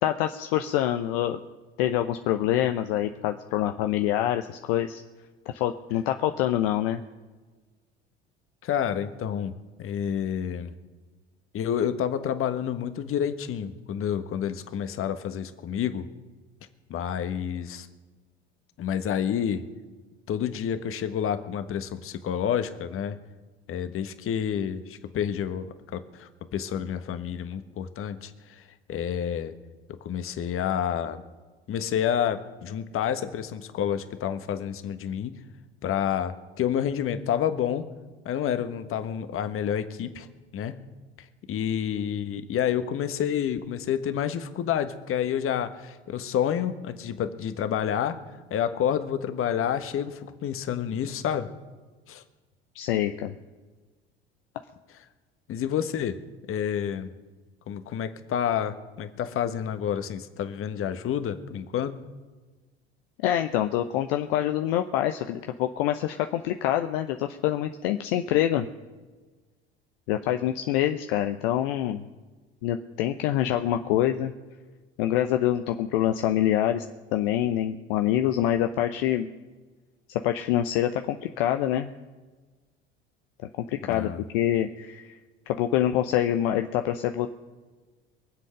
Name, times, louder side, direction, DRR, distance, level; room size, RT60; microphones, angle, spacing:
voice 1, 0.0-1.4 1.8-5.0 5.5-7.0 52.7-53.3 63.2-68.7 70.1-72.0 72.6-74.3 75.0-76.8 77.1-79.3 80.2-81.9 83.7-85.1 85.5-87.3, left 12 dB, 60° left, 7 dB, 0.8 m, -25 dB
voice 2, 8.6-9.5 9.8-10.7 11.5-16.1 16.9-17.9 18.8-19.6 20.3-23.2 23.7-29.5 30.0-31.2 31.7-35.4 35.8-37.8 38.2-40.3 40.5-40.7 41.2-48.2 48.5-51.5 52.1-52.2 55.5-56.2 56.5-57.1 57.7-62.0 83.8-84.2, left 9 dB, 40° left, 10 dB, 1.4 m, -29 dB
23.5 x 7.8 x 6.4 m, 1.3 s
figure-of-eight pair, 65°, 32 cm